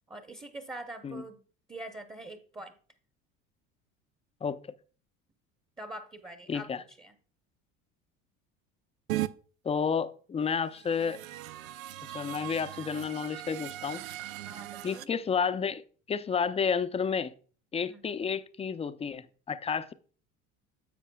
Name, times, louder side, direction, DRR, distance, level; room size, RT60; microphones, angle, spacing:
voice 1, 0.1-1.4 1.7-2.7 5.8-7.1 14.5-15.1 17.9-18.1, right 1 dB, 10° right, 0.8 m, -44 dB
voice 2, 6.5-6.8 9.6-11.2 12.0-14.0 14.8-15.8 16.1-17.3 17.7-19.9, left 6 dB, 15° left, 0.4 m, -31 dB
sound 1, 9.1-9.3 10.7-15.1, right 15 dB, 85° right, 0.5 m, -38 dB
10.0 x 7.3 x 2.3 m
hypercardioid pair, 75°, 40 cm